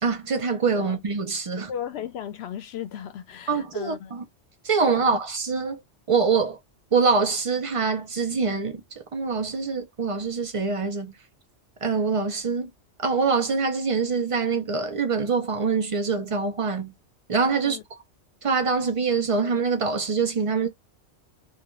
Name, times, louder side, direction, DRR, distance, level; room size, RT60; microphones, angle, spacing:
voice 1, 0.0-1.7 3.5-4.2 4.6-5.8 6.1-6.6 6.9-8.8 9.1-11.1 11.8-12.7 13.0-16.9 17.3-17.8 18.4-20.7, right 5 dB, 50° right, 0.4 m, -24 dB
voice 2, 1.6-4.1 5.0-5.2 17.6-17.8, left 9 dB, 65° left, 0.8 m, -36 dB
2.3 x 2.2 x 3.0 m
omnidirectional pair, 1.2 m